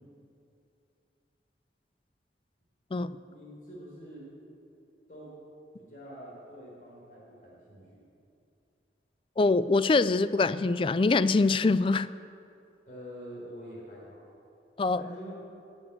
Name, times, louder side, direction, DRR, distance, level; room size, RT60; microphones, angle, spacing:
voice 1, 3.2-4.3 5.1-5.4 5.8-8.0 12.8-14.2 14.9-15.3, equal, 45° left, -5 dB, 4.0 m, -45 dB
voice 2, 9.4-12.1 14.8-15.0, left 3 dB, 30° left, 15 dB, 0.3 m, -24 dB
19.5 x 7.2 x 8.2 m, 2.7 s
head